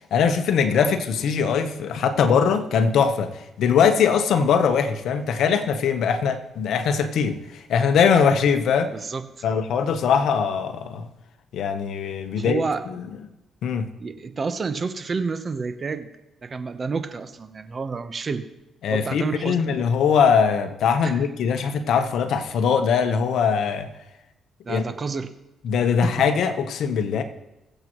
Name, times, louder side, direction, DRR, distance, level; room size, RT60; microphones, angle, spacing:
voice 1, 0.1-8.9 9.4-11.1 11.5-12.6 13.6-13.9 18.8-23.9 24.7-24.8 25.6-27.2, left 6 dB, 75° left, 8 dB, 1.0 m, -21 dB
voice 2, 8.9-9.4 12.4-12.8 14.0-16.1 16.4-18.5 18.9-19.8 21.0-21.3 24.6-25.3 26.0-26.3, right 4 dB, 35° right, 10 dB, 0.9 m, -29 dB
22.5 x 7.7 x 3.1 m, 0.95 s
cardioid pair, 90°, 0 cm